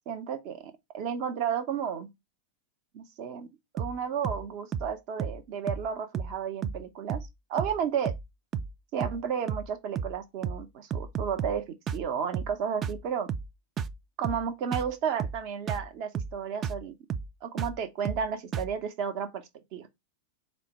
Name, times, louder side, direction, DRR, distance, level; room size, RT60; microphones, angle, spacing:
voice 1, 0.1-2.1 2.9-8.1 8.9-13.3 14.2-16.9 17.4-19.4 19.7-19.9, right 7 dB, 45° right, 0.8 m, -33 dB
sound 1, 3.8-4.0 4.2-4.5 4.7-4.9 5.2-5.4 5.7-5.9 6.1-6.4 6.6-6.8 7.1-7.3 7.6-7.8 8.1-8.3 8.5-8.7 9.0-9.2 9.5-9.7 10.0-10.2 10.4-10.6 10.9-11.6 11.9-12.1 12.3-12.6 12.8-13.0 13.3-13.5 13.8-14.0 14.2-14.5 14.7-14.9 15.2-15.4 15.7-15.9 16.1-16.4 16.6-16.8 17.1-17.3 17.6-17.8 18.0-18.3 18.5-18.7, right 7 dB, 25° right, 0.3 m, -33 dB
4.2 x 2.1 x 4.3 m
figure-of-eight pair, 90°, 0 cm